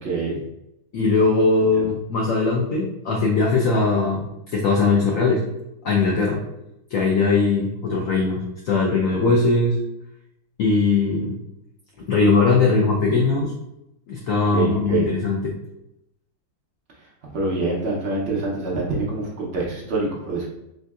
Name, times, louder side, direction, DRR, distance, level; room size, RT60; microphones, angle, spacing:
voice 1, 0.0-0.4 1.8-1.9 14.5-15.1 17.3-20.5, right 3 dB, 70° right, -4 dB, 0.6 m, -25 dB
voice 2, 0.9-5.4 5.8-6.4 6.9-9.8 10.6-11.3 12.1-13.5 14.1-15.5, left 3 dB, 85° left, -2 dB, 0.7 m, -20 dB
3.8 x 2.6 x 2.3 m, 0.86 s
omnidirectional pair, 2.0 m